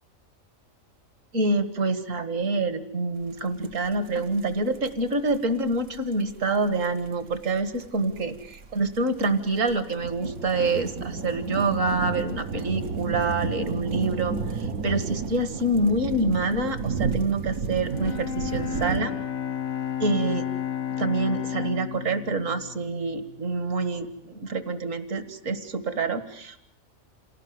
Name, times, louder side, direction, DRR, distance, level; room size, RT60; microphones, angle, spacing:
voice 1, 1.3-19.1 20.0-20.4 20.9-26.6, right 2 dB, 70° right, 11 dB, 2.1 m, -26 dB
sound 1, 3.4-3.5 3.6-19.0, right 5 dB, 85° right, 1.8 m, -32 dB
Bowed string instrument, 17.8-23.9, left 9 dB, 80° left, 1.6 m, -33 dB
28.0 x 18.0 x 9.5 m, 0.74 s
omnidirectional pair, 1.4 m